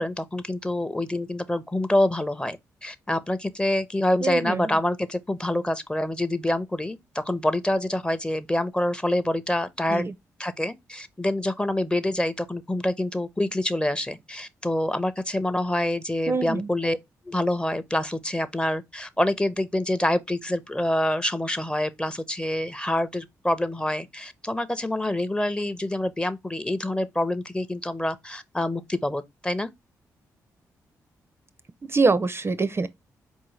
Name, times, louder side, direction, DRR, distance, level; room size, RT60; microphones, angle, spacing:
voice 1, 0.0-10.0 10.4-17.0 17.3-29.7, left 1 dB, 10° left, 0.6 m, -26 dB
voice 2, 4.2-4.6 9.9-10.1 16.3-16.7 31.9-32.9, right 4 dB, 30° right, 0.5 m, -24 dB
4.4 x 2.7 x 3.0 m
hypercardioid pair, 40°, 8 cm